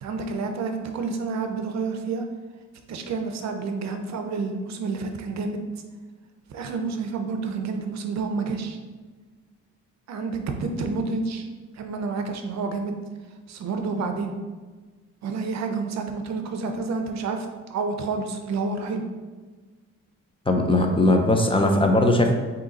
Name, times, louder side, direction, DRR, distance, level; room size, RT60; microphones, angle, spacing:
voice 1, 0.0-2.2 2.9-5.6 6.5-8.8 10.1-11.5 11.7-12.9 13.5-14.3 15.2-19.0, right 4 dB, 65° right, 5 dB, 0.6 m, -29 dB
voice 2, 20.5-22.3, left 1 dB, 20° left, 3 dB, 0.5 m, -19 dB
3.7 x 2.8 x 3.9 m, 1.3 s
cardioid pair, 90°, 30 cm